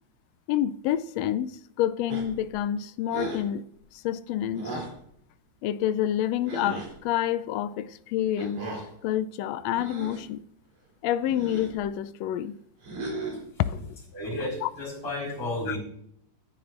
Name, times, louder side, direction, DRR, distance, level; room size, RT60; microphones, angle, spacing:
voice 1, 0.5-3.6 3.9-4.8 5.6-8.6 9.0-10.4 11.0-12.6 13.6-14.0 14.6-14.7 15.7-15.8, left 11 dB, 80° left, 1.5 m, -28 dB
sound 1, 2.1-2.5 3.1-3.5 4.5-5.0 6.5-6.9 8.4-8.9 9.7-10.3 11.3-11.8 12.8-13.5, right 2 dB, 55° right, 4.2 m, -36 dB
voice 2, 14.1-15.8, left 1 dB, 60° left, 6.0 m, -32 dB
17.5 x 10.5 x 2.5 m
omnidirectional pair, 3.5 m